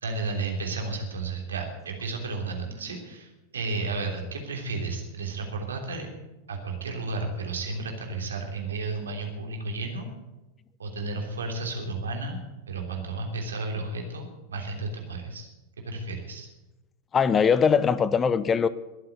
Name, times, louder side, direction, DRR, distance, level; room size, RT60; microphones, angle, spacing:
voice 1, 0.0-6.1 6.5-10.1 10.8-15.5 15.8-16.5, right 3 dB, 70° right, 3.2 m, -33 dB
voice 2, 17.1-18.7, left 6 dB, 20° left, 0.6 m, -21 dB
22.0 x 7.8 x 8.1 m
figure-of-eight pair, 90°, 0 cm